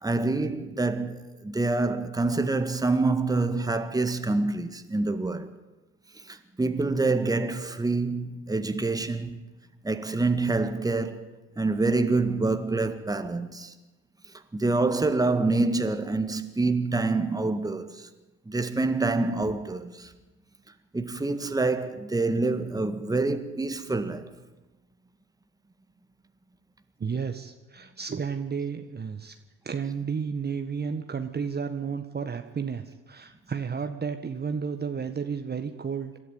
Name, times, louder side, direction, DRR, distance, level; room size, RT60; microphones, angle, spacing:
voice 1, 0.0-5.5 6.3-9.4 9.8-11.3 11.6-13.7 14.5-18.1 18.5-20.1 20.9-24.3, right 3 dB, 10° right, 1.8 m, -26 dB
voice 2, 27.0-29.3 29.6-36.1, right 6 dB, 25° right, 1.6 m, -32 dB
26.0 x 13.0 x 8.8 m
figure-of-eight pair, 60°, 39 cm